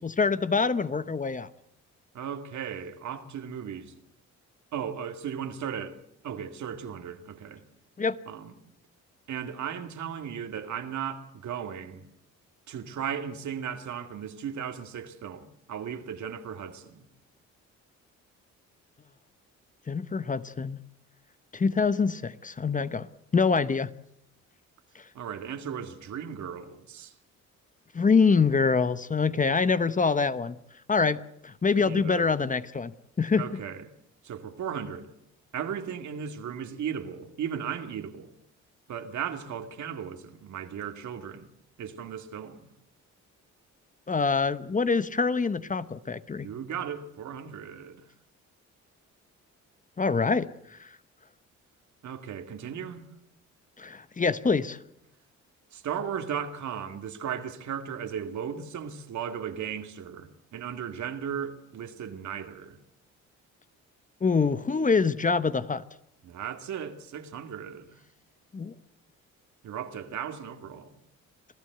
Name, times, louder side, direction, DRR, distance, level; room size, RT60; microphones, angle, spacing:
voice 1, 0.0-1.5 8.0-8.2 19.9-20.8 21.5-23.1 23.3-23.9 24.9-25.0 27.9-30.6 30.9-33.4 44.1-46.5 50.0-50.9 53.8-54.8 64.2-65.8 68.5-68.7, left 5 dB, 25° left, 0.9 m, -25 dB
voice 2, 2.1-4.0 4.7-6.0 6.2-7.6 8.3-8.5 9.3-12.0 12.7-17.1 25.1-27.1 31.8-32.3 33.4-33.9 34.2-35.1 35.5-38.4 38.9-41.5 41.8-42.7 46.4-48.0 52.0-53.1 55.7-62.8 66.2-68.0 69.6-70.9, right 8 dB, 70° right, 2.3 m, -36 dB
27.0 x 15.0 x 8.1 m
cardioid pair, 90°, 30 cm